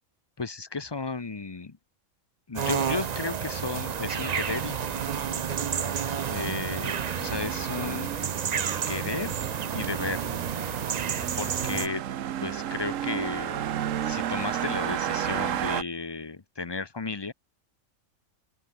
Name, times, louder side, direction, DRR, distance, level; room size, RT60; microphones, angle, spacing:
voice 1, 0.4-1.8 2.5-4.7 6.3-8.1 8.9-9.4 9.7-10.3 11.4-12.0 12.4-13.7 14.0-17.3, left 4 dB, 25° left, 0.7 m, -34 dB
sound 1, 2.5-11.9, right 7 dB, 45° right, 0.5 m, -31 dB
sound 2, 2.8-15.8, right 10 dB, 70° right, 1.2 m, -34 dB
open air
omnidirectional pair, 1.5 m